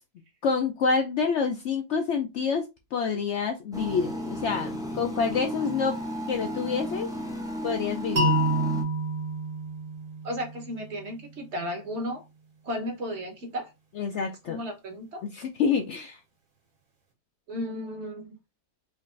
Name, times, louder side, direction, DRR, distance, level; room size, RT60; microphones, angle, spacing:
voice 1, 0.4-2.6 2.9-6.0 6.3-7.1 7.6-8.4 14.0-14.6 15.2-16.2, left 5 dB, 65° left, 4 dB, 0.7 m, -27 dB
sound 1, 3.7-8.8, equal, 5° right, 0.3 m, -34 dB
sound 2, 8.2-11.1, right 1 dB, 75° right, 2.0 m, -28 dB
voice 2, 10.2-12.2 12.6-13.7 14.5-15.2 17.5-18.4, equal, 50° right, 4 dB, 1.1 m, -34 dB
4.5 x 2.4 x 3.1 m, 0.24 s
omnidirectional pair, 1.6 m